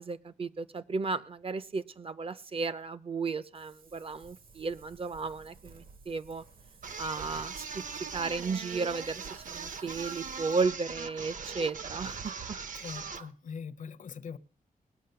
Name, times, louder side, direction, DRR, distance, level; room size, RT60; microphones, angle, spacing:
voice 1, 0.0-6.4 7.0-7.8 8.1-12.6, right 4 dB, 40° right, 0.6 m, -34 dB
Wind, 3.5-10.6, right 4 dB, 80° right, 1.9 m, -57 dB
sound 1, 6.8-13.3, right 5 dB, 60° right, 0.9 m, -40 dB
voice 2, 12.7-14.4, left 6 dB, 60° left, 0.7 m, -42 dB
19.5 x 8.2 x 6.8 m
wide cardioid pair, 150°, 15 cm